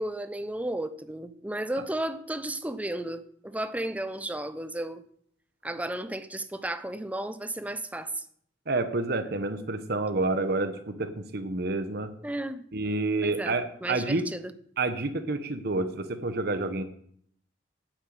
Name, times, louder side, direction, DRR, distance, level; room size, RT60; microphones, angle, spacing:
voice 1, 0.0-5.0 5.6-8.2 12.2-12.6 13.2-13.5 13.8-14.5, right 1 dB, 10° right, 11 dB, 0.7 m, -33 dB
voice 2, 8.7-12.1 12.7-14.3 14.8-16.8, right 2 dB, 60° right, 9 dB, 1.0 m, -29 dB
9.1 x 7.9 x 9.2 m, 0.66 s
head